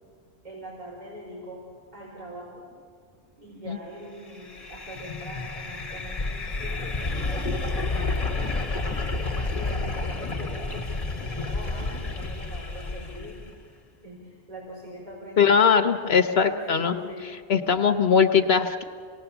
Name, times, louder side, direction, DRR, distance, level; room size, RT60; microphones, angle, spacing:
voice 1, 0.4-1.6 1.9-2.7 3.4-8.7 9.5-13.4 14.0-15.9 16.3-17.7, equal, 40° right, -5 dB, 4.7 m, -42 dB
sound 1, 4.4-13.5, left 3 dB, 35° left, 1.3 m, -30 dB
voice 2, 15.4-16.9 17.5-18.8, left 6 dB, 65° left, 8 dB, 1.1 m, -20 dB
28.0 x 19.0 x 7.1 m, 2.1 s
omnidirectional pair, 1.2 m